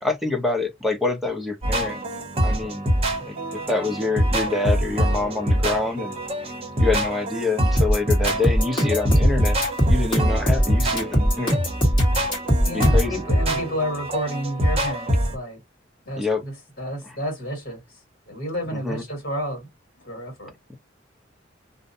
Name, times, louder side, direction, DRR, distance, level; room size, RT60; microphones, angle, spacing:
voice 1, 0.0-2.0 2.4-2.9 3.2-6.2 6.4-6.5 6.8-9.6 9.9-11.6 12.7-13.1 16.2-16.4 18.8-19.0, left 3 dB, ahead, 0.5 m, -26 dB
sound 1, 1.6-15.3, equal, 30° right, 0.8 m, -24 dB
sound 2, 7.8-13.1, equal, 25° left, 1.3 m, -20 dB
voice 2, 12.6-15.6 16.0-19.7 20.0-20.5, equal, 55° left, 1.5 m, -31 dB
2.6 x 2.0 x 2.6 m
head